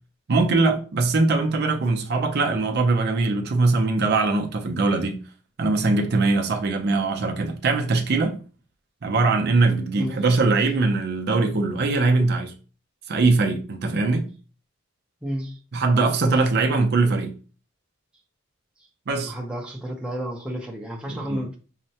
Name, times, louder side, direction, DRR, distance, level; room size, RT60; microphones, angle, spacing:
voice 1, 0.3-5.2 5.6-8.4 9.0-12.5 13.1-14.3 15.7-17.3 19.1-19.3 21.1-21.4, right 3 dB, 55° right, 0.5 m, -21 dB
voice 2, 15.2-15.6 19.2-21.6, equal, 5° right, 0.7 m, -31 dB
5.6 x 2.1 x 2.8 m
head